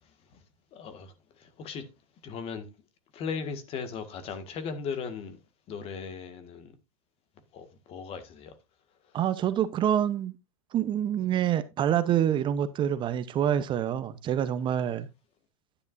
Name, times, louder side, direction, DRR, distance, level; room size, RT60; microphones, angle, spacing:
voice 1, 0.0-0.4 0.7-1.9 2.2-2.7 3.1-5.4 5.7-6.8 7.5-8.6 9.0-9.2, left 6 dB, 35° left, 1.7 m, -38 dB
voice 2, 9.1-10.3 10.7-15.1, right 10 dB, 25° right, 0.8 m, -26 dB
10.5 x 10.0 x 2.6 m
hypercardioid pair, 130°, 18 cm